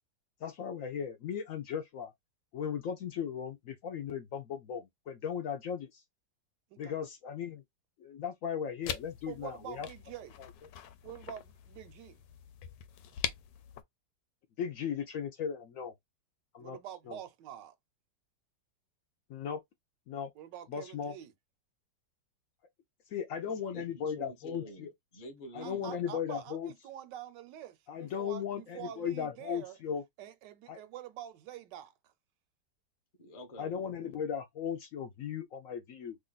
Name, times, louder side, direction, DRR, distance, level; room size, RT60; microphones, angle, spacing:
voice 1, 0.4-2.1 2.5-6.0 6.8-7.6 8.0-9.9 10.4-10.5 14.6-15.9 16.5-16.8 17.1-17.2 19.3-19.6 20.1-20.3 20.7-21.1 23.1-24.9 25.5-26.7 27.9-30.0 30.7-30.8 33.6-36.2, left 8 dB, 70° left, 0.8 m, -37 dB
sound 1, 8.8-13.8, left 9 dB, 90° left, 1.2 m, -42 dB
voice 2, 9.3-10.5 11.0-12.2 16.6-17.8 20.4-21.3 25.6-29.8 30.2-32.1, right 11 dB, 85° right, 1.3 m, -46 dB
voice 3, 23.4-26.0 33.2-33.7, right 1 dB, 30° left, 0.7 m, -48 dB
3.0 x 2.4 x 3.8 m
omnidirectional pair, 1.9 m